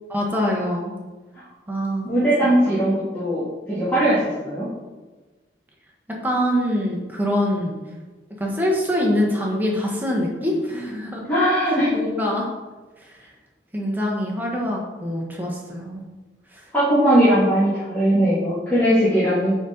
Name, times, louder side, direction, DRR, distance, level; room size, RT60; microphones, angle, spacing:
voice 1, 0.1-0.9 1.7-2.1 2.7-2.8 6.2-7.7 8.4-11.2 11.9-12.5 13.7-16.0 16.5-16.6, equal, 10° right, -2 dB, 1.3 m, -24 dB
voice 2, 2.0-3.4 3.7-4.7 11.3-12.0 16.7-19.5, equal, 10° left, -13 dB, 2.0 m, -19 dB
8.9 x 4.3 x 4.0 m, 1.2 s
head